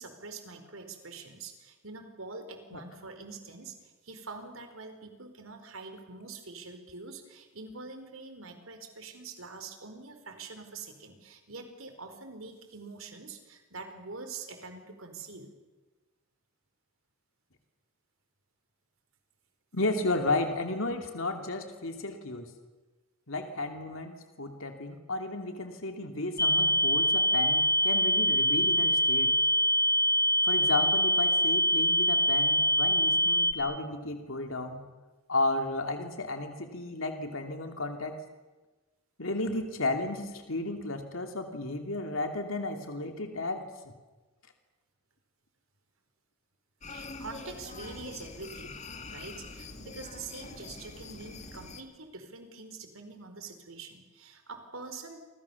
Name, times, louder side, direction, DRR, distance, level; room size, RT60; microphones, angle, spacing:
voice 1, 0.0-3.7 4.0-15.5 46.9-48.8 49.1-55.2, right 4 dB, 75° right, 7 dB, 4.7 m, -45 dB
voice 2, 19.7-22.5 23.3-29.3 30.4-34.8 35.3-38.2 39.2-43.9, left 2 dB, 70° left, 5 dB, 2.9 m, -33 dB
sound 1, 26.4-33.5, equal, 15° left, 1.3 m, -24 dB
sound 2, 46.8-51.8, left 3 dB, 35° left, 2.1 m, -44 dB
30.0 x 25.5 x 7.2 m, 1.2 s
head